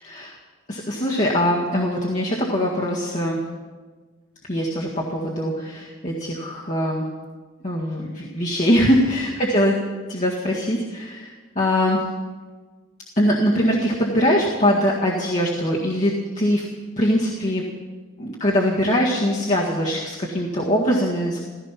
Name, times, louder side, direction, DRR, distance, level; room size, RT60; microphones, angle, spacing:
voice 1, 0.0-0.4 0.7-3.4 4.5-7.1 7.6-9.8 10.1-12.0 13.2-16.6 17.0-17.6 18.2-21.4, equal, 35° left, -5 dB, 1.8 m, -22 dB
15.5 x 15.0 x 5.9 m, 1.4 s
head